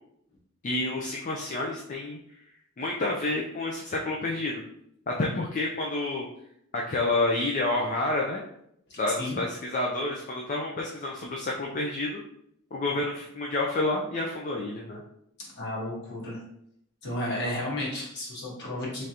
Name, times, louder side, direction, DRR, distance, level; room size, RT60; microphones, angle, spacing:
voice 1, 0.6-2.2 2.8-4.6 5.1-6.3 6.7-8.4 9.0-12.2 12.7-15.0, left 2 dB, 35° left, -2 dB, 0.4 m, -29 dB
voice 2, 8.9-9.4 15.4-16.4 17.0-19.1, left 1 dB, 50° left, -4 dB, 1.3 m, -33 dB
3.7 x 3.2 x 2.8 m, 0.73 s
head